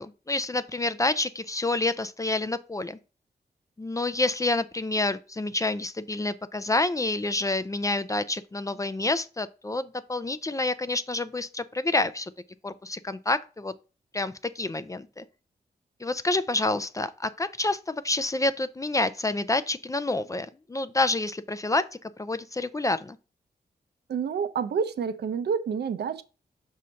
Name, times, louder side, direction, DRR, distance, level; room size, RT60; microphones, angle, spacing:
voice 1, 0.0-3.0 3.8-12.3 12.6-13.7 14.1-15.2 16.0-23.2, left 2 dB, 20° left, 0.4 m, -28 dB
voice 2, 24.1-26.2, right 6 dB, 75° right, 0.6 m, -28 dB
6.3 x 2.7 x 5.5 m
wide cardioid pair, 120°, 17 cm